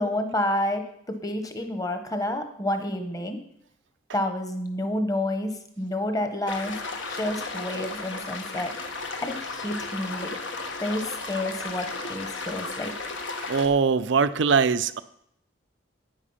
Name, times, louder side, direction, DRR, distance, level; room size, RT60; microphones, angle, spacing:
voice 1, 0.0-3.4 4.1-6.7 7.1-8.7 9.2-10.3 10.8-12.9, left 1 dB, 20° left, 7 dB, 1.2 m, -29 dB
sound 1, 6.5-13.7, left 3 dB, 70° left, 1.5 m, -34 dB
voice 2, 13.5-15.0, right 5 dB, 65° right, 14 dB, 0.5 m, -22 dB
10.0 x 9.3 x 5.6 m, 0.72 s
head